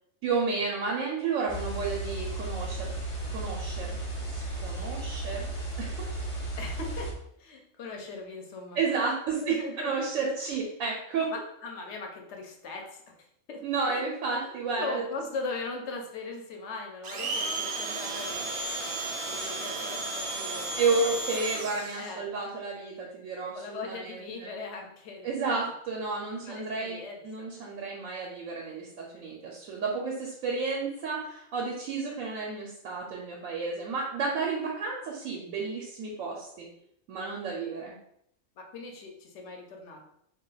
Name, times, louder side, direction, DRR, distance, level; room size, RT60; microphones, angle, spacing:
voice 1, 0.2-2.9 3.3-4.0 4.3-6.1 8.7-11.3 13.6-15.0 20.8-24.5 25.2-36.7 37.1-37.9, right 4 dB, 80° right, -2 dB, 1.0 m, -32 dB
sound 1, 1.5-7.1, right 2 dB, 45° left, 0.4 m, -34 dB
voice 2, 6.6-7.1 7.4-9.1 9.4-9.9 10.4-10.6 11.3-14.0 14.4-20.8 21.2-21.3 22.0-22.2 23.5-25.6 26.5-27.5 38.6-40.0, left 3 dB, 65° left, 2 dB, 0.9 m, -40 dB
Domestic sounds home sounds, 17.0-22.1, right 2 dB, 65° right, 0.7 m, -33 dB
2.5 x 2.2 x 3.9 m, 0.74 s
omnidirectional pair, 1.4 m